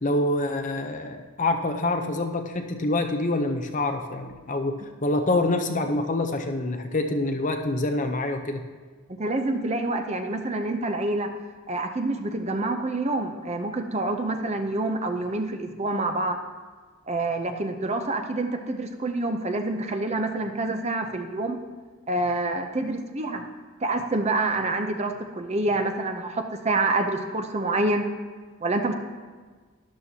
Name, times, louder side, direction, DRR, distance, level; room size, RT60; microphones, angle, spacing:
voice 1, 0.0-8.6, left 2 dB, 35° left, 5 dB, 0.6 m, -26 dB
voice 2, 9.2-11.3 11.7-16.4 17.1-21.6 22.1-23.4 23.8-28.1 28.6-28.9, right 2 dB, 30° right, 5 dB, 0.6 m, -27 dB
12.5 x 10.5 x 2.8 m, 1.4 s
head